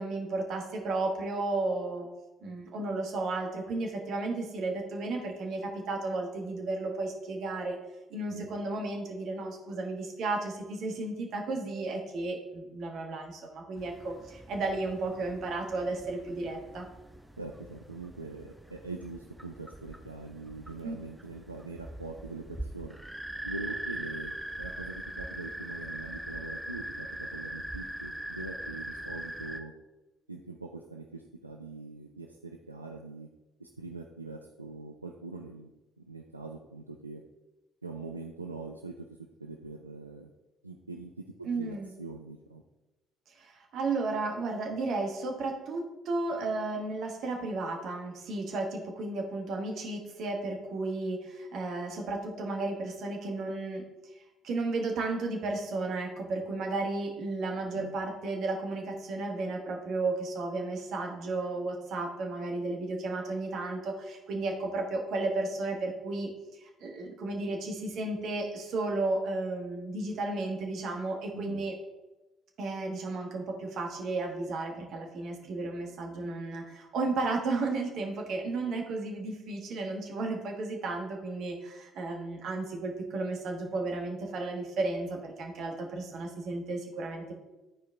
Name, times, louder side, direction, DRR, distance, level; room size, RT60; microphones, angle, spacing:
voice 1, 0.0-2.1 2.4-7.8 8.1-16.9 20.8-20.9 41.4-41.9 43.3-53.8 54.4-66.3 66.6-71.7 72.6-87.3, right 3 dB, 55° right, 2 dB, 1.5 m, -33 dB
sound 1, 13.8-29.6, right 1 dB, 5° right, 0.7 m, -42 dB
voice 2, 17.4-23.0 23.4-29.7 30.3-33.3 33.6-35.7 36.0-37.2 37.8-39.1 39.4-40.3 40.6-41.1 41.4-42.6 57.7-57.9 71.3-71.6, right 3 dB, 85° right, 2 dB, 0.4 m, -43 dB
12.5 x 4.6 x 3.4 m, 1.1 s
figure-of-eight pair, 50°, 0 cm